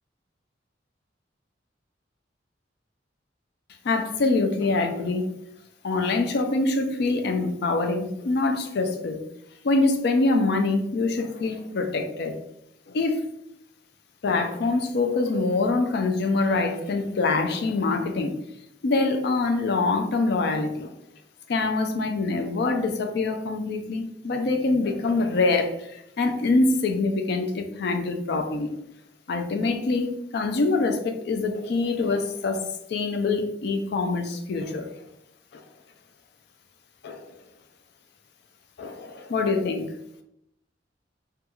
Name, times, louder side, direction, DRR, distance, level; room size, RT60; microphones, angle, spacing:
voice 1, 3.8-5.3 5.8-9.2 9.6-12.4 12.9-13.2 14.2-18.4 18.8-20.9 21.5-28.7 29.3-32.6 32.9-34.9 35.5-35.6 37.0-37.4 38.8-39.9, left 3 dB, 60° left, 5 dB, 0.4 m, -25 dB
2.9 x 2.3 x 2.3 m, 0.77 s
head